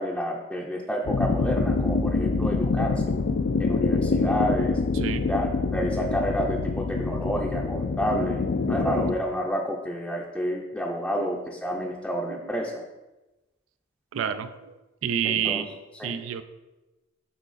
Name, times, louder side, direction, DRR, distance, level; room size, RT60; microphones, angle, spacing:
voice 1, 0.0-3.0 3.6-4.8 5.3-12.8 15.2-15.7 16.0-16.1, equal, 5° left, -3 dB, 0.5 m, -29 dB
sound 1, 1.1-9.2, left 4 dB, 55° left, 0.4 m, -25 dB
voice 2, 14.1-14.7 15.0-15.7 16.0-16.4, right 8 dB, 75° right, 11 dB, 0.4 m, -28 dB
8.3 x 4.0 x 4.0 m, 1.1 s
head